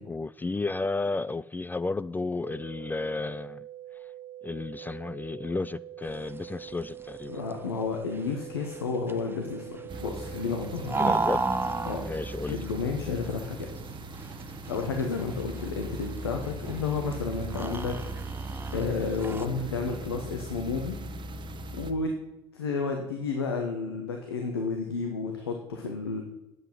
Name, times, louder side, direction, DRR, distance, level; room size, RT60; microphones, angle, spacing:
voice 1, 0.1-3.7 4.4-7.4 11.0-11.4 12.1-12.6, left 3 dB, 15° left, 17 dB, 0.3 m, -32 dB
sound 1, 2.4-12.4, right 12 dB, 70° right, 1.7 m, -44 dB
sound 2, 6.0-19.5, right 3 dB, 15° right, 0.6 m, -35 dB
voice 2, 7.3-11.1 11.8-12.0 12.5-13.7 14.2-14.3 14.7-18.0 18.3-18.4 18.7-21.0 21.7-22.1 22.5-26.2, left 4 dB, 85° left, 3 dB, 1.0 m, -31 dB
sound 3, 9.9-21.9, right 1 dB, 40° right, 1.0 m, -39 dB
9.4 x 7.9 x 5.8 m, 0.96 s
figure-of-eight pair, 50°, 13 cm